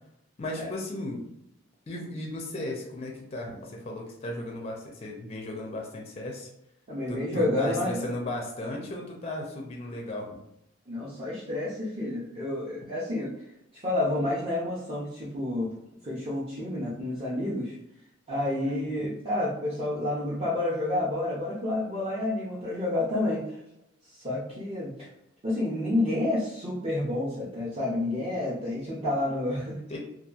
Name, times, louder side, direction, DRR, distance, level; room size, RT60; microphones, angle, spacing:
voice 1, 0.4-1.2 1.9-6.5 7.1-10.3 18.6-19.1 29.9-30.0, left 1 dB, 30° left, 0 dB, 0.4 m, -35 dB
voice 2, 6.9-8.0 10.9-13.3 13.8-15.7 16.0-17.8 18.3-23.4 24.1-25.1 25.4-29.8, left 1 dB, 30° right, -9 dB, 0.5 m, -29 dB
2.7 x 2.3 x 2.3 m, 0.81 s
head